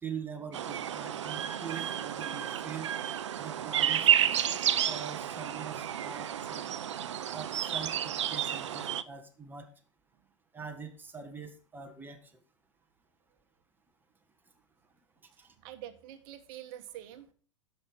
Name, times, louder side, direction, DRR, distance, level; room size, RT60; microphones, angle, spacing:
voice 1, 0.0-2.9 3.4-4.4 4.8-6.7 7.3-9.7 10.5-12.3 15.4-15.5, right 6 dB, 10° right, 6 dB, 1.5 m, -43 dB
sound 1, 0.5-9.0, right 10 dB, 65° right, 0.6 m, -31 dB
voice 2, 15.3-17.3, right 12 dB, 50° right, 10 dB, 1.3 m, -47 dB
11.5 x 6.0 x 5.2 m, 0.40 s
figure-of-eight pair, 90°, 16 cm